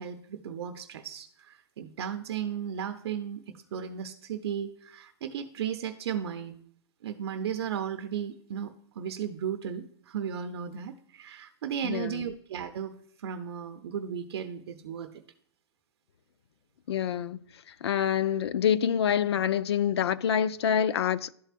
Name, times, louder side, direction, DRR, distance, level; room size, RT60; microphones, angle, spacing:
voice 1, 0.0-6.6 7.0-15.1, right 8 dB, 65° right, 0.7 m, -35 dB
voice 2, 11.8-12.3 16.9-17.4 17.8-21.3, left 9 dB, 75° left, 0.5 m, -26 dB
12.0 x 4.5 x 2.5 m
hypercardioid pair, 140°, 14 cm